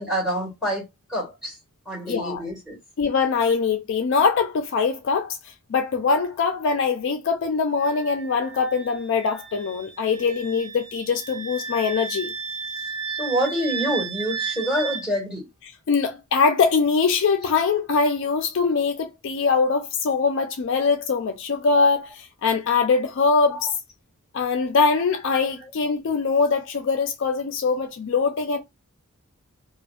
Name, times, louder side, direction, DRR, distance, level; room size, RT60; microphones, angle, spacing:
voice 1, 0.0-1.6 1.8-2.8 13.1-15.4, equal, ahead, 1.4 m, -27 dB
voice 2, 2.1-2.4 3.0-5.4 5.7-12.3 15.9-23.7 24.3-28.6, left 5 dB, 55° left, 0.3 m, -22 dB
Wind instrument woodwind instrument, 7.8-15.1, right 5 dB, 65° right, 0.5 m, -34 dB
2.5 x 2.1 x 2.3 m
head